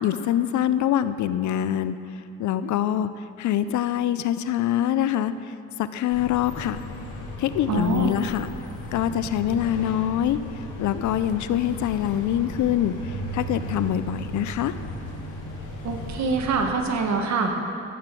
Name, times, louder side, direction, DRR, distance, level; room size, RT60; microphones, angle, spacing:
voice 1, 0.0-2.0 2.4-3.1 3.4-5.5 5.8-6.8 7.4-8.5 8.9-10.4 10.8-14.7, left 11 dB, 70° left, 13 dB, 0.6 m, -24 dB
sound 1, 6.1-16.7, equal, 90° left, 2.3 m, -36 dB
voice 2, 7.7-8.1 15.8-17.5, right 4 dB, 65° right, 3 dB, 1.6 m, -24 dB
13.5 x 8.7 x 6.1 m, 2.6 s
cardioid pair, 90°, 30 cm